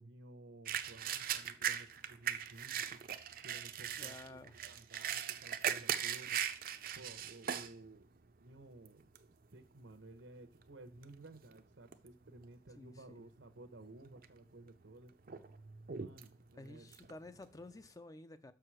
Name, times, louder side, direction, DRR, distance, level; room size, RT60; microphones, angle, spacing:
voice 1, 0.0-3.0 3.4-4.4 4.7-6.4 7.0-9.1 9.5-15.1 15.9-16.9, right 2 dB, 85° right, 1.0 m, -55 dB
sound 1, 0.7-7.7 8.2-8.3 8.9-9.2 10.0-10.1 10.4-11.6 11.9-12.5 12.8-12.9 13.8-14.4 14.8-17.9, right 9 dB, 50° right, 0.5 m, -39 dB
voice 2, 4.0-4.6 12.8-13.2 16.6-18.5, left 2 dB, 20° left, 0.4 m, -52 dB
6.4 x 4.7 x 6.2 m
head